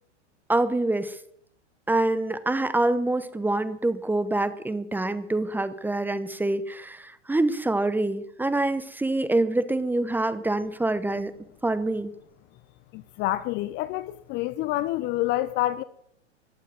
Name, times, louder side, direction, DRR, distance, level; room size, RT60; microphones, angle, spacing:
voice 1, 0.5-1.2 1.9-11.3 11.6-12.1, right 2 dB, 5° right, 0.9 m, -26 dB
voice 2, 12.9-15.8, left 15 dB, 30° left, 0.6 m, -27 dB
15.5 x 12.0 x 7.6 m
hypercardioid pair, 115°, 36 cm